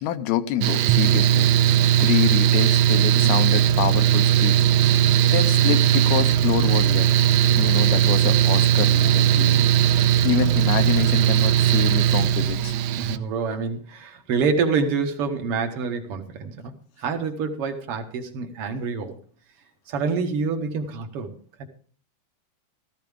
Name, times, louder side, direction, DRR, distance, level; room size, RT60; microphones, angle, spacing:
voice 1, 0.0-4.7 5.3-7.1 7.4-9.7 10.2-12.7, left 12 dB, 80° left, 9 dB, 2.7 m, -27 dB
Mechanical fan, 0.6-13.2, right 10 dB, 85° right, 2.6 m, -18 dB
voice 2, 13.0-16.7 17.0-19.2 19.9-21.7, right 5 dB, 60° right, 5 dB, 1.5 m, -27 dB
15.0 x 14.0 x 3.5 m, 0.42 s
omnidirectional pair, 4.5 m